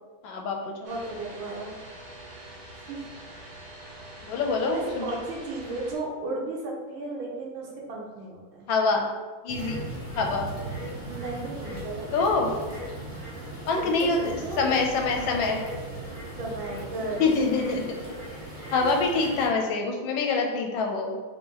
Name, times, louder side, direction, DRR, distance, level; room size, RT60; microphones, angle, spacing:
voice 1, 0.2-0.9 4.2-5.2 8.7-9.1 9.4-9.8 10.2-10.5 12.1-12.5 13.7-15.6 17.2-18.0 18.7-21.2, left 4 dB, 75° left, 2 dB, 1.3 m, -25 dB
sound 1, 0.8-5.9, right 1 dB, 50° right, 0.9 m, -45 dB
voice 2, 0.8-1.7 2.9-3.0 4.7-8.7 11.0-12.3 13.8-14.7 16.4-17.2 18.8-18.9, right 2 dB, 80° right, -2 dB, 1.7 m, -35 dB
sound 2, 9.5-19.5, right 1 dB, 30° right, 0.6 m, -38 dB
4.0 x 2.9 x 3.8 m, 1.4 s
omnidirectional pair, 2.2 m